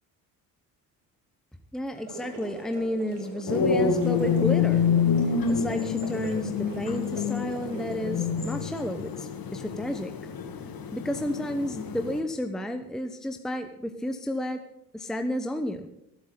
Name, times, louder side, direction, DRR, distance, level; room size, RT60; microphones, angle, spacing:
voice 1, 1.7-4.9 5.5-10.3 10.9-14.6 14.9-15.9, equal, ahead, 6 dB, 1.1 m, -32 dB
sound 1, 1.9-8.7, right 3 dB, 70° right, 3.7 m, -41 dB
sound 2, 3.5-12.2, left 6 dB, 45° left, 2.2 m, -27 dB
22.5 x 9.1 x 4.0 m, 0.86 s
hypercardioid pair, 50°, 48 cm